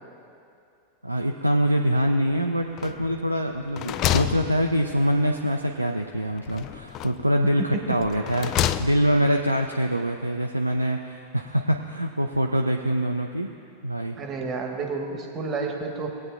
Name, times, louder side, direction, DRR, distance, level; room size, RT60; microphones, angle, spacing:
voice 1, 1.0-13.5 13.8-14.2, equal, 85° right, 2 dB, 0.4 m, -24 dB
sound 1, 2.8-3.3 3.6-5.2 6.5-7.3 8.0-9.3, left 11 dB, 35° left, 0.3 m, -29 dB
voice 2, 14.2-16.1, right 4 dB, 30° right, 2 dB, 1.3 m, -30 dB
20.0 x 8.7 x 2.4 m, 2.5 s
figure-of-eight pair, 90°, 0 cm